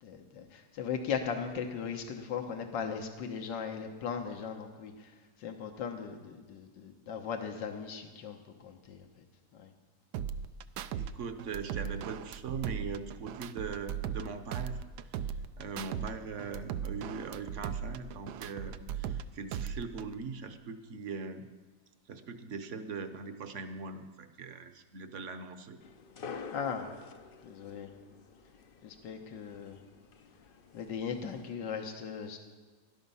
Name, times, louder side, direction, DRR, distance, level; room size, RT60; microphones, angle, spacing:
voice 1, 0.0-5.1 5.4-9.1 9.5-9.7 26.5-26.9 27.4-27.9 28.8-29.8 30.7-32.4, left 6 dB, 85° left, 5 dB, 1.8 m, -38 dB
sound 1, 10.1-11.1 11.4-14.3 14.5-16.1 16.4-19.2 19.5-20.1, right 8 dB, 75° right, 1.2 m, -37 dB
voice 2, 10.9-14.8 15.1-15.3 15.6-21.5 22.1-25.8, right 4 dB, 50° right, 9 dB, 1.1 m, -41 dB
sound 2, 25.8-31.5, left 5 dB, 55° left, 0.6 m, -49 dB
18.5 x 11.5 x 5.5 m, 1.3 s
omnidirectional pair, 1.9 m